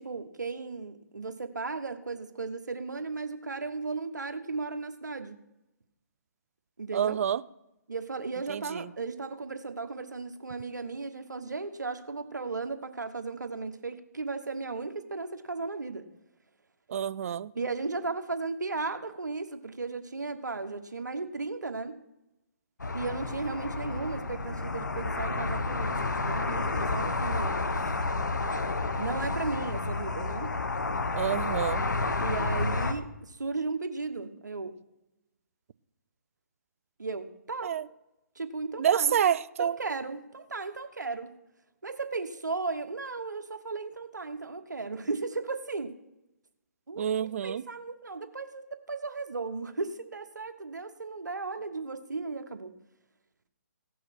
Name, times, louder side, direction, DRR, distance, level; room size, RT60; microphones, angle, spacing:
voice 1, 0.0-5.4 6.8-7.2 7.9-16.1 17.5-22.0 22.9-27.9 29.0-30.5 32.2-34.8 37.0-37.7 38.3-39.1 39.6-41.3 41.8-45.9 46.9-52.7, right 3 dB, 85° right, 1.3 m, -35 dB
voice 2, 6.9-7.4 8.5-8.8 16.9-17.5 31.2-31.9 37.6-37.9 38.8-39.8 47.0-47.6, right 9 dB, 50° right, 0.4 m, -28 dB
sound 1, 22.8-32.9, left 3 dB, 85° left, 1.2 m, -30 dB
16.0 x 6.2 x 6.0 m
figure-of-eight pair, 145°, 9 cm